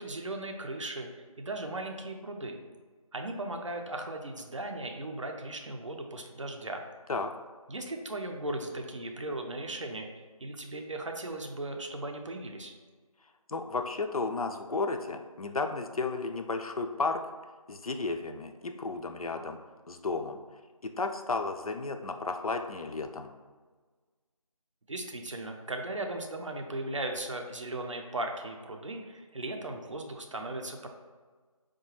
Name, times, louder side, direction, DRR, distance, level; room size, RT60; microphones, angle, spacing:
voice 1, 0.0-2.6 3.1-6.8 7.7-10.1 10.4-12.7 24.9-30.9, right 2 dB, 55° right, 3 dB, 0.5 m, -37 dB
voice 2, 13.5-17.2 17.7-19.6 19.9-20.4 20.8-23.3, left 3 dB, 75° left, 5 dB, 0.4 m, -33 dB
4.8 x 2.2 x 3.0 m, 1.4 s
figure-of-eight pair, 170°, 19 cm